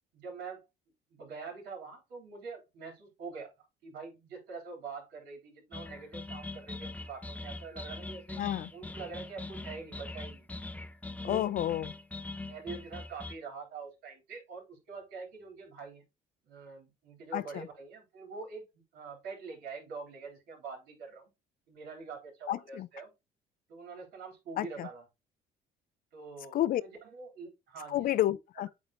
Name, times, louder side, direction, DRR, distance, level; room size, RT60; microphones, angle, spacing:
voice 1, 0.1-0.7 1.1-8.4 8.7-10.5 11.2-11.5 12.4-16.0 16.4-21.3 21.7-23.1 23.7-25.1 26.1-28.3, right 4 dB, 85° right, 3.8 m, -45 dB
sound 1, 5.7-13.4, left 2 dB, 10° left, 0.5 m, -42 dB
voice 2, 8.4-8.7 11.2-11.9 17.3-17.7 22.5-22.9 24.6-24.9 26.5-26.8 27.9-28.7, left 13 dB, 60° left, 0.5 m, -30 dB
8.5 x 3.9 x 3.0 m
cardioid pair, 110°, 17 cm